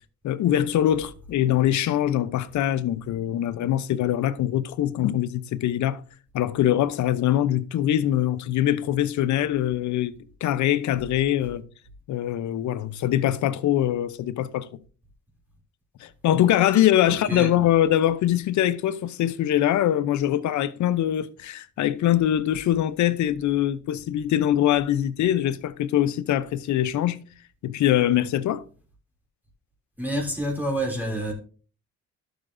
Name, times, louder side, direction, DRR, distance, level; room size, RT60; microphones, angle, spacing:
voice 1, 0.2-6.0 6.3-10.2 10.4-11.6 12.1-14.7 16.0-27.2 27.6-28.6, left 12 dB, 70° left, 0.7 m, -23 dB
voice 2, 30.0-31.3, right 1 dB, 5° right, 2.9 m, -27 dB
12.5 x 7.0 x 2.6 m
cardioid pair, 90°, 30 cm